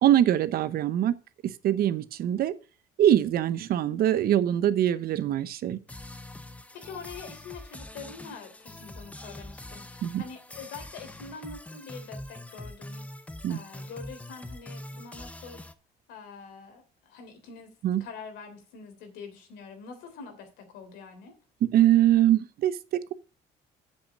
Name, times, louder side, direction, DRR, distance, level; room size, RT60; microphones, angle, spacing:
voice 1, 0.0-1.1 1.6-2.5 3.0-5.8 10.0-10.2 13.4-13.6 17.8-18.0 21.7-23.1, right 11 dB, 65° right, 0.9 m, -23 dB
sound 1, 5.9-15.7, left 1 dB, 10° left, 0.8 m, -44 dB
voice 2, 6.5-13.1 13.5-15.6 16.1-17.7 18.0-21.3, left 5 dB, 90° left, 3.4 m, -45 dB
7.7 x 7.4 x 6.2 m
cardioid pair, 110°, 17 cm